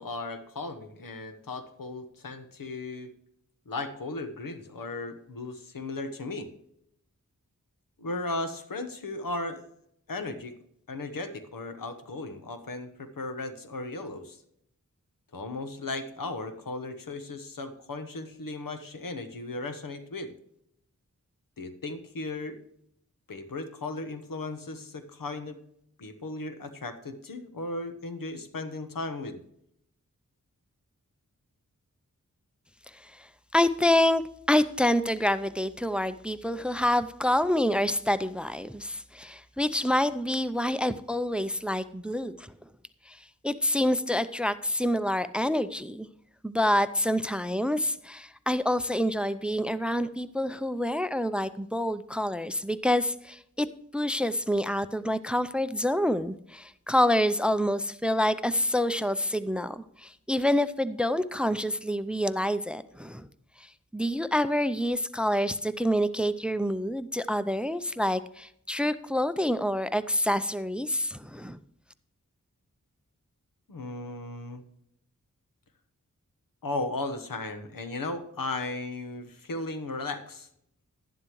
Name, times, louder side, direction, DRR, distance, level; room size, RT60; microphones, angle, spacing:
voice 1, 0.0-3.1 3.7-6.5 8.0-9.7 10.1-10.6 10.9-14.4 15.3-20.3 21.6-22.6 23.3-25.6 26.0-29.4 73.7-74.6 76.6-80.5, left 2 dB, 90° left, 8 dB, 1.2 m, -36 dB
voice 2, 33.5-34.2 34.5-42.5 43.1-43.2 43.4-46.1 46.4-53.7 53.9-63.3 63.9-71.6, left 1 dB, 5° right, 14 dB, 0.5 m, -27 dB
11.0 x 11.0 x 3.1 m, 0.73 s
wide cardioid pair, 55°, 33 cm